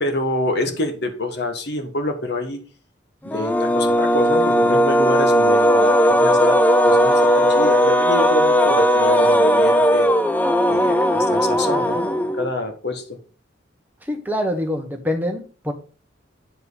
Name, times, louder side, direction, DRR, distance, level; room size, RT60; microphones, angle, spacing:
voice 1, 0.0-2.6 3.2-6.6 6.8-10.1 10.7-12.1 12.3-13.2, left 2 dB, 55° left, 6 dB, 1.4 m, -27 dB
sound 1, 3.3-12.6, equal, 10° left, 0.5 m, -17 dB
voice 2, 14.0-15.7, left 1 dB, 10° right, 4 dB, 1.3 m, -25 dB
8.9 x 5.4 x 4.1 m, 0.37 s
head